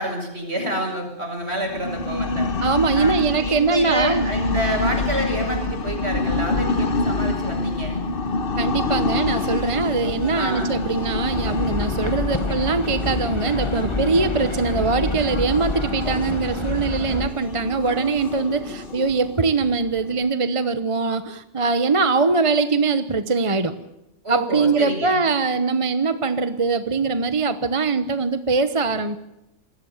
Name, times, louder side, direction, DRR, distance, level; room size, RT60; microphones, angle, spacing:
voice 1, 0.0-2.5 2.9-8.0 10.4-10.7 24.2-25.2, right 1 dB, 60° right, 2 dB, 7.5 m, -28 dB
sound 1, 1.6-20.3, left 3 dB, 50° left, 1.3 m, -27 dB
voice 2, 2.6-4.3 8.6-23.9 24.3-29.2, right 4 dB, 30° right, 11 dB, 1.0 m, -22 dB
sound 2, 9.3-19.8, left 2 dB, 65° left, 4.1 m, -40 dB
sound 3, 11.3-17.3, left 2 dB, 25° left, 1.6 m, -28 dB
27.5 x 21.5 x 7.3 m, 0.95 s
omnidirectional pair, 1.3 m